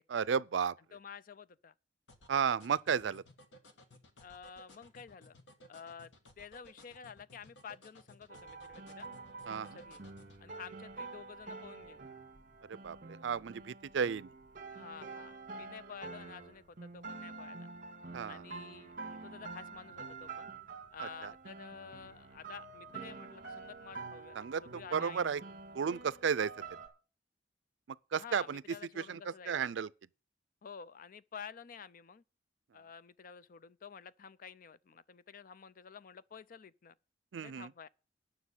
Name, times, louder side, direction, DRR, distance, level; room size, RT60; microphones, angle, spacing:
voice 1, 0.1-0.7 2.3-3.2 9.5-9.8 12.7-13.0 13.2-14.3 18.1-18.4 21.2-21.3 24.4-24.6 24.9-25.4 25.7-26.5 28.1-28.6 29.0-29.9 37.3-37.7, right 7 dB, 85° right, 0.4 m, -33 dB
voice 2, 0.9-1.7 4.2-5.4 5.7-9.1 9.7-10.0 10.4-12.1 14.7-17.7 18.2-20.5 20.9-25.3 28.1-29.7 30.6-32.2 32.7-36.9 37.4-37.9, left 6 dB, 50° left, 0.5 m, -51 dB
sound 1, 2.1-10.4, left 1 dB, 80° left, 1.5 m, -58 dB
sound 2, 8.3-26.9, right 4 dB, 50° right, 2.0 m, -47 dB
9.7 x 6.2 x 8.2 m
head